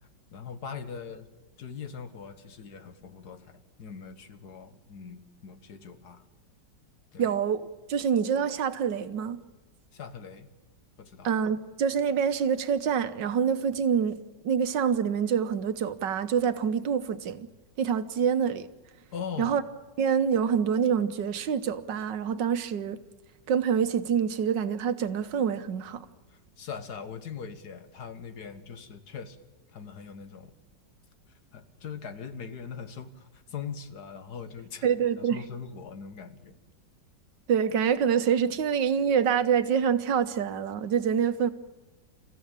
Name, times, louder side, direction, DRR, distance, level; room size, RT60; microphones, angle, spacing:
voice 1, 0.3-1.3 1.6-6.2 7.1-7.3 9.9-10.5 11.0-11.3 19.1-19.6 26.3-29.4 29.7-30.5 31.5-34.9 35.2-36.6, left 6 dB, 65° left, 1.8 m, -41 dB
voice 2, 7.2-7.6 7.9-9.4 11.2-14.2 14.4-17.5 17.8-18.7 19.4-19.6 20.0-23.0 23.5-26.1 34.8-35.4 37.5-41.5, right 7 dB, 80° right, 1.7 m, -26 dB
28.0 x 15.0 x 8.9 m
omnidirectional pair, 1.9 m